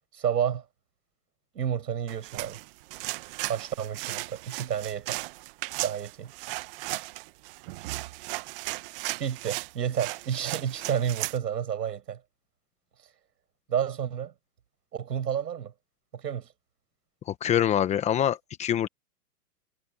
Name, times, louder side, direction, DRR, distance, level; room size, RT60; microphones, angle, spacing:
voice 1, 0.1-0.6 1.5-2.6 3.5-5.2 5.8-6.3 9.2-12.2 13.7-14.3 14.9-15.7 16.1-16.5, right 9 dB, 85° right, 6.6 m, -30 dB
sound 1, 2.1-11.4, right 21 dB, 35° right, 1.3 m, -36 dB
voice 2, 17.3-18.9, left 10 dB, 15° left, 1.0 m, -25 dB
hypercardioid pair, 150°, 48 cm